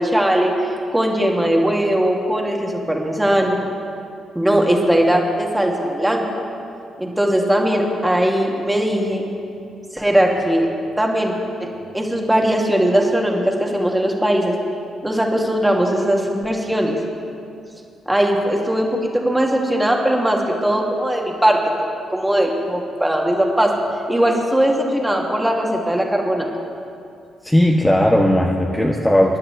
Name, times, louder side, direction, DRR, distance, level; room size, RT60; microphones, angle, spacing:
voice 1, 0.0-3.6 4.3-6.4 7.0-9.2 9.9-10.7 11.0-11.3 11.6-11.7 11.9-14.6 15.0-17.0 18.1-23.7 24.1-26.5, right 1 dB, 10° right, 0 dB, 2.5 m, -19 dB
voice 2, 27.4-29.4, left 1 dB, 10° left, -1 dB, 1.3 m, -16 dB
25.0 x 11.5 x 3.5 m, 2.5 s
hypercardioid pair, 40°, 0 cm